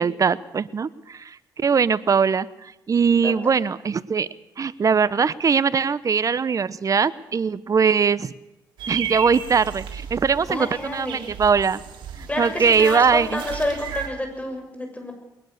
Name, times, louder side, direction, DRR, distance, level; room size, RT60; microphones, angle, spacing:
voice 1, 0.0-4.3 4.6-8.3 8.9-11.8 12.2-13.4, right 6 dB, 45° right, 17 dB, 0.9 m, -21 dB
sound 1, 8.8-14.1, right 7 dB, 80° right, 3.8 m, -35 dB
voice 2, 10.5-11.2 12.3-15.1, left 1 dB, 15° left, 4 dB, 7.0 m, -29 dB
21.0 x 19.5 x 6.7 m, 0.92 s
supercardioid pair, 65°, 8 cm